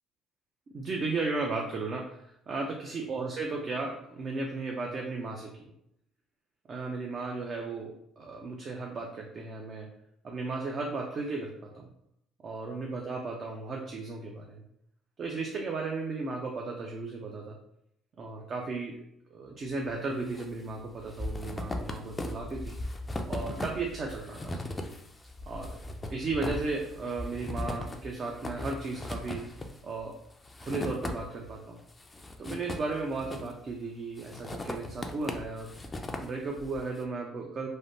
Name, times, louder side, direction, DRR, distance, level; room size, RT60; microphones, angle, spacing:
voice 1, 0.7-5.7 6.7-9.9 10.2-11.9 12.4-14.6 15.2-17.6 18.2-19.0 19.3-22.8 23.3-24.6 25.5-25.8 26.1-29.5 29.8-30.2 30.6-31.8 32.4-35.7 36.2-37.7, right 3 dB, 40° right, 1 dB, 0.4 m, -35 dB
sound 1, 19.9-20.5 20.8-31.5 31.9-33.7 34.2-36.8, left 1 dB, 20° left, 0.4 m, -38 dB
3.2 x 2.1 x 2.6 m, 0.75 s
cardioid pair, 105°, 0 cm